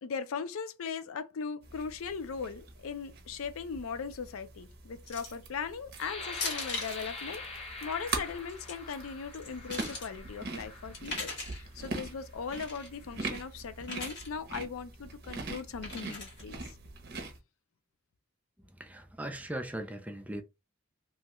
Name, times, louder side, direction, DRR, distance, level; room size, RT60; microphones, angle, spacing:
voice 1, 0.0-7.4 7.8-16.7, left 5 dB, 85° left, 0.5 m, -39 dB
sound 1, 1.6-17.4, right 3 dB, 50° right, 0.7 m, -43 dB
sound 2, 5.1-5.4 6.3-7.0 8.4-8.7 9.3-10.1 10.9-11.6 12.5-12.9 13.8-14.3 15.8-16.4, left 3 dB, 55° left, 1.4 m, -39 dB
sound 3, 5.9-11.6 12.3-12.4 12.9-13.3, left 3 dB, 30° left, 0.7 m, -45 dB
voice 2, 18.8-20.4, right 1 dB, 5° right, 0.4 m, -39 dB
3.1 x 2.3 x 2.9 m
head